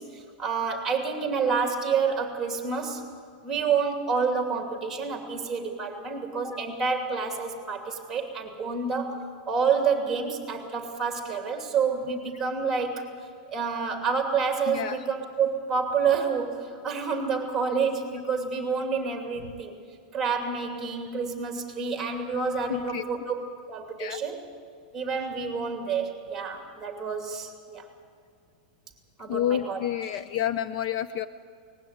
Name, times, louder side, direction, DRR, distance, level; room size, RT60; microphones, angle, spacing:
voice 1, 0.0-3.1 3.4-13.1 13.5-19.7 20.1-23.4 23.7-24.4 24.9-27.9 29.2-29.8, right 5 dB, 10° right, 4 dB, 2.7 m, -28 dB
voice 2, 14.7-15.0 22.7-23.0 24.0-24.2 29.3-31.3, left 10 dB, 45° left, 13 dB, 0.6 m, -29 dB
19.5 x 16.0 x 9.5 m, 2.3 s
supercardioid pair, 165°, 5 cm